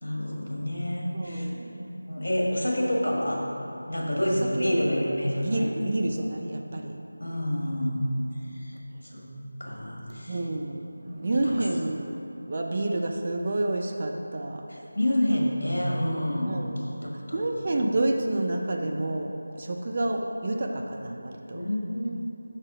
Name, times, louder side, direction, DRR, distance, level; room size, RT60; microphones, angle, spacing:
voice 1, 0.0-1.5 1.8-3.4 3.9-5.7 7.2-8.0 8.5-8.7 9.1-9.3 9.6-10.4 11.4-11.5 14.7-16.5 17.0-17.9 21.5-22.1, left 1 dB, 60° left, -3 dB, 1.4 m, -28 dB
voice 2, 1.1-1.9 4.3-4.8 5.4-7.0 10.3-12.1 12.5-14.7 16.4-16.8 17.3-21.6, right 2 dB, 30° right, 2 dB, 0.3 m, -29 dB
6.1 x 4.2 x 4.9 m, 2.9 s
figure-of-eight pair, 165°, 0 cm